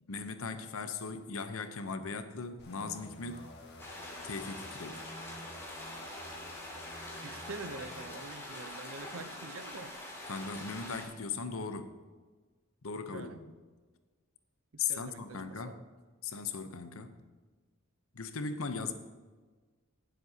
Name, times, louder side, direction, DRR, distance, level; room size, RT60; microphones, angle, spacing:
voice 1, 0.0-3.5 4.2-5.0 10.3-11.9 12.8-13.5 14.8-15.8 16.2-17.2 18.1-18.9, left 5 dB, 80° left, 9 dB, 0.8 m, -38 dB
sound 1, 2.6-8.1, left 1 dB, 55° left, 1.7 m, -51 dB
sound 2, 3.8-11.1, left 1 dB, 15° left, 2.6 m, -44 dB
voice 2, 7.2-9.9 13.1-13.4 14.9-15.8, right 3 dB, 75° right, 10 dB, 0.7 m, -45 dB
17.5 x 7.6 x 2.9 m, 1.4 s
head